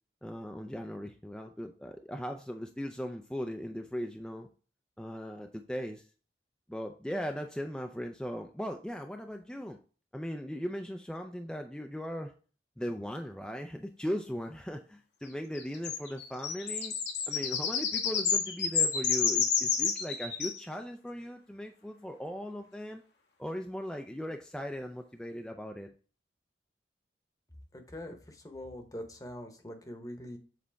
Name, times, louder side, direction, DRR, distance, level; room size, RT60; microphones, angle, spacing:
voice 1, 0.2-4.5 5.0-6.0 6.7-9.8 10.1-12.3 12.8-16.9 17.3-23.0 23.4-25.9, equal, 5° left, 3 dB, 0.4 m, -38 dB
sound 1, 15.6-20.6, left 6 dB, 75° left, 1.1 m, -30 dB
voice 2, 27.7-30.4, left 1 dB, 20° left, 5 dB, 0.9 m, -43 dB
7.5 x 4.1 x 3.4 m, 0.38 s
head